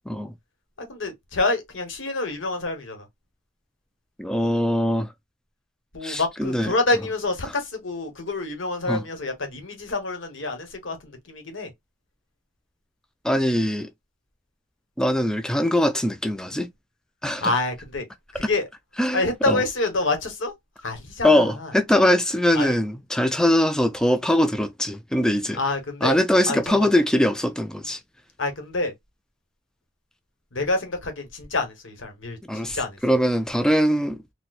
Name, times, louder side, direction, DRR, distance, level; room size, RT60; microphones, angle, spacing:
voice 1, 0.8-3.1 5.9-11.7 17.4-18.0 18.3-18.7 19.1-20.5 20.8-21.7 22.5-22.8 25.5-26.2 26.5-26.9 28.4-28.9 30.5-33.0, left 2 dB, 80° left, 1.1 m, -27 dB
voice 2, 4.2-5.1 6.0-6.7 8.9-9.0 13.2-13.9 15.0-16.7 17.2-17.5 18.4-18.5 19.0-19.6 21.2-25.6 26.0-28.0 32.5-32.8 33.0-34.3, left 1 dB, 5° left, 0.3 m, -22 dB
4.2 x 2.2 x 2.4 m
head